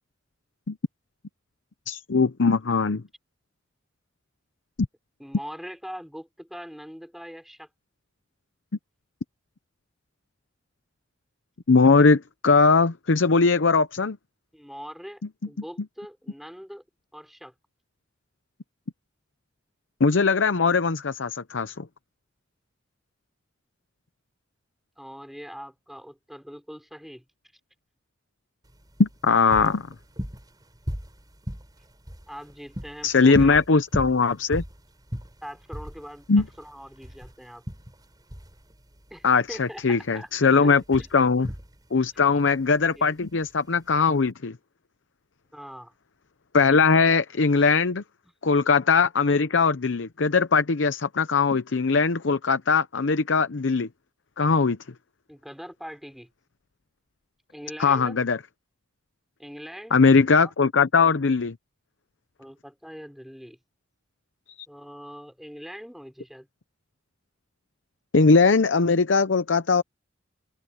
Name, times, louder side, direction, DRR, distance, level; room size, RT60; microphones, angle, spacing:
voice 1, 1.9-3.0 11.7-14.2 20.0-21.9 29.0-29.9 33.0-34.6 36.3-36.4 39.2-41.5 41.9-44.6 46.5-48.0 48.4-53.9 54.4-54.8 57.8-58.4 59.9-61.5 64.5-64.7 68.1-69.8, left 4 dB, 65° left, 0.7 m, -20 dB
voice 2, 5.2-7.7 14.5-16.8 17.1-17.5 25.0-27.2 32.3-33.6 35.4-37.6 39.1-40.3 40.6-41.1 42.1-42.2 43.0-43.1 45.5-45.9 55.3-56.3 57.5-58.2 59.4-60.0 60.3-60.5 62.4-63.6 64.7-66.5, equal, ahead, 5.9 m, -42 dB
sound 1, 28.6-44.3, equal, 20° right, 4.7 m, -38 dB
head